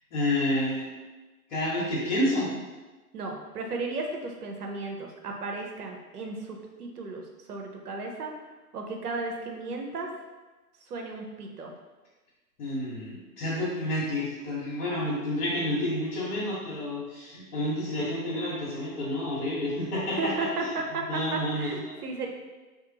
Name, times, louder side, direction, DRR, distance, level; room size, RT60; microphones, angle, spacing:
voice 1, 0.1-0.9 1.5-2.5 12.6-20.3 20.6-20.7 21.1-21.9, left 1 dB, 55° left, -9 dB, 1.2 m, -29 dB
voice 2, 3.1-8.3 8.7-10.1 10.9-11.7 20.2-22.3, right 3 dB, 75° right, 2 dB, 0.7 m, -34 dB
2.5 x 2.3 x 2.8 m, 1.2 s
hypercardioid pair, 135°, 47 cm